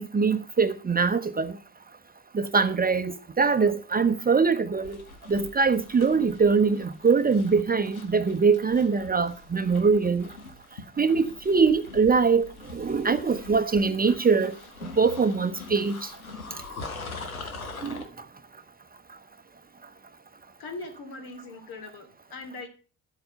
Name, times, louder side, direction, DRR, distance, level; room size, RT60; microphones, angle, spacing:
voice 1, 0.0-1.6 2.3-5.0 5.3-10.3 11.0-14.6 14.8-16.1 17.8-18.0, right 5 dB, 20° right, 0.8 m, -23 dB
sound 1, 4.8-18.1, left 4 dB, 85° left, 1.0 m, -43 dB
voice 2, 20.6-22.7, left 3 dB, 60° left, 2.6 m, -40 dB
12.0 x 7.9 x 5.6 m
figure-of-eight pair, 40°, 41 cm